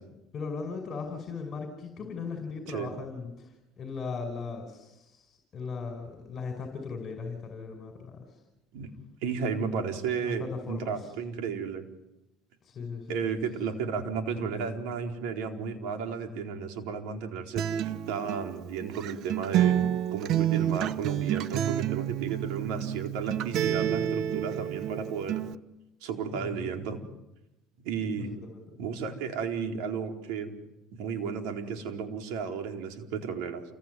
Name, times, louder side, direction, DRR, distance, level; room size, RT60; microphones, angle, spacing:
voice 1, 0.3-8.4 10.2-11.1 12.6-13.2 26.3-26.8 28.2-28.7, left 5 dB, 35° left, 5 dB, 5.4 m, -38 dB
voice 2, 9.2-11.9 13.1-19.8 20.1-25.4 26.0-27.0 27.8-28.3 28.8-30.6 31.0-33.6, right 6 dB, 80° right, 4 dB, 4.3 m, -33 dB
Acoustic guitar, 17.6-25.5, right 11 dB, 55° right, 1.1 m, -29 dB
29.0 x 21.5 x 9.5 m, 0.95 s
cardioid pair, 120°, 0 cm